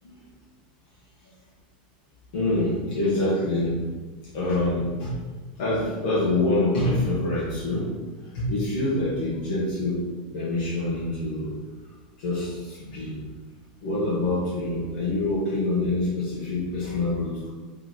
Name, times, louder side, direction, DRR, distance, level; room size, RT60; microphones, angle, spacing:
voice 1, 2.3-3.8 4.3-5.1 5.6-7.9 8.3-10.0 10.3-11.5 12.2-13.2 13.8-17.5, left 2 dB, 65° left, -8 dB, 1.3 m, -26 dB
3.4 x 3.1 x 4.1 m, 1.4 s
supercardioid pair, 155°, 5 cm